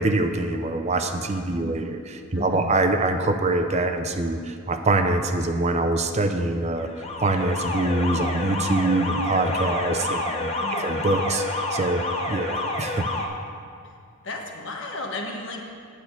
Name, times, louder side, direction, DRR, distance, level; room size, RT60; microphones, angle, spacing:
voice 1, 0.0-6.9 7.2-13.1, right 2 dB, 30° right, 6 dB, 0.5 m, -24 dB
voice 2, 2.3-2.7 9.8-9.9 10.6-10.9 14.2-15.6, left 2 dB, 55° left, 1 dB, 1.3 m, -34 dB
Alarm, 6.8-13.3, left 2 dB, 25° left, 1.0 m, -29 dB
9.3 x 6.1 x 8.4 m, 2.3 s
head